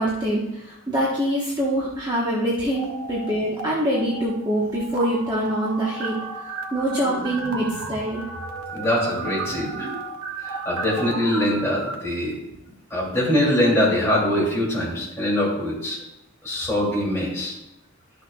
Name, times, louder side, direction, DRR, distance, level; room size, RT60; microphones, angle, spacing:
voice 1, 0.0-6.2 6.7-8.2, right 1 dB, 20° right, -6 dB, 1.2 m, -24 dB
sound 1, 2.7-3.7 3.9-11.9, right 3 dB, 85° right, 1.1 m, -33 dB
voice 2, 8.7-9.9 10.4-12.4 12.9-16.0 16.4-17.6, left 1 dB, 15° left, -5 dB, 2.7 m, -23 dB
12.5 x 6.2 x 2.3 m, 0.90 s
head